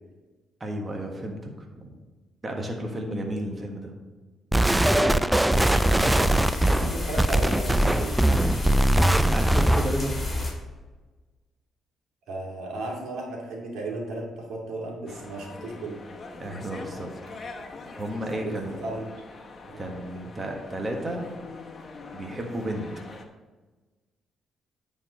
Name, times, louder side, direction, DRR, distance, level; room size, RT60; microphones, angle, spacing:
voice 1, 0.6-1.4 1.7-2.0 2.4-3.9 9.3-10.2 16.4-17.1 18.0-18.7 19.8-21.2 22.1-22.9, right 1 dB, 25° right, 1 dB, 1.5 m, -32 dB
sound 1, 4.5-10.0, right 1 dB, 10° right, 0.3 m, -21 dB
voice 2, 4.9-5.2 5.6-8.1 12.3-16.0 18.3-18.5 18.8-19.1 19.7-19.8 20.1-20.3, right 2 dB, 80° right, -1 dB, 2.5 m, -35 dB
sound 2, 5.5-10.5, left 2 dB, 20° left, 2.4 m, -30 dB
sound 3, 15.1-23.2, left 3 dB, 40° left, 1.1 m, -43 dB
9.6 x 4.5 x 5.1 m, 1.3 s
cardioid pair, 90°, 0 cm